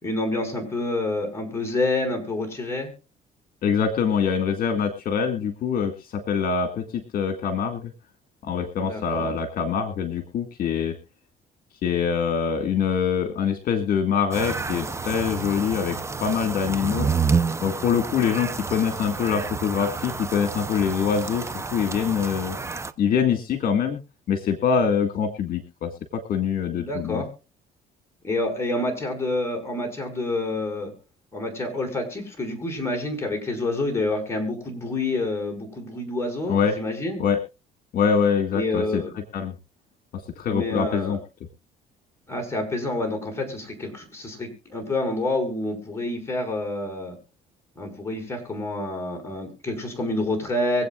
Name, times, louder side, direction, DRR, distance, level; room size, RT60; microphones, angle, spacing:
voice 1, 0.0-2.9 8.8-9.3 26.8-27.3 28.2-30.9 31.3-37.2 38.5-39.1 40.5-41.2 42.3-47.1 47.8-50.9, left 2 dB, 15° left, 1 dB, 5.7 m, -28 dB
voice 2, 3.6-7.9 8.4-11.0 11.8-16.0 16.2-17.1 17.6-22.6 23.0-24.0 24.3-27.2 36.5-36.8 37.2-37.4 37.9-39.0 39.3-39.5 40.4-41.2, left 7 dB, 60° left, 7 dB, 1.8 m, -24 dB
sound 1, 14.3-22.9, right 5 dB, 15° right, 0.7 m, -29 dB
24.0 x 8.2 x 2.4 m, 0.31 s
cardioid pair, 110°, 17 cm